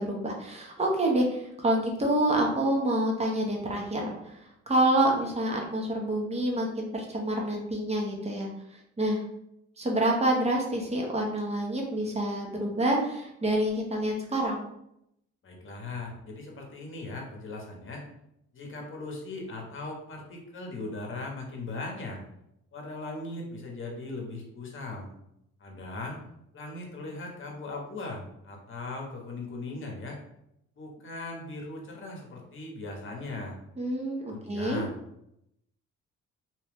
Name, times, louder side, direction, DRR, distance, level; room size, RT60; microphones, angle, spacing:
voice 1, 0.0-4.4 4.7-8.5 9.0-9.2 9.8-14.7 33.8-34.8, right 1 dB, 20° right, 0 dB, 0.8 m, -27 dB
voice 2, 15.4-18.0 18.5-22.2 22.7-25.1 25.6-26.2 26.5-30.2 30.8-33.6 34.3-35.0, left 2 dB, 40° left, 1 dB, 1.0 m, -38 dB
2.8 x 2.3 x 3.5 m, 0.79 s
cardioid pair, 90°, 30 cm